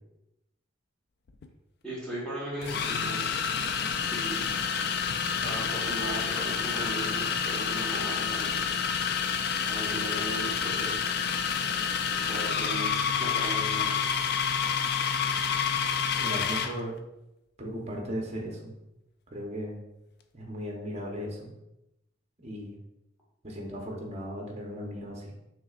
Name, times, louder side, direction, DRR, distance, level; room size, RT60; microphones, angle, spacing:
sound 1, 1.3-1.5 2.6-16.8, left 7 dB, 50° left, 0.3 m, -29 dB
voice 1, 1.8-3.4 4.1-4.4 5.4-8.7 9.7-11.1 12.2-12.9 13.2-13.9, right 1 dB, 5° left, -8 dB, 1.2 m, -37 dB
voice 2, 16.2-17.0 17.6-18.8 19.3-19.8 20.3-21.5 22.4-22.8 23.4-25.3, equal, 30° right, 0 dB, 0.8 m, -36 dB
5.8 x 3.3 x 2.4 m, 0.91 s
head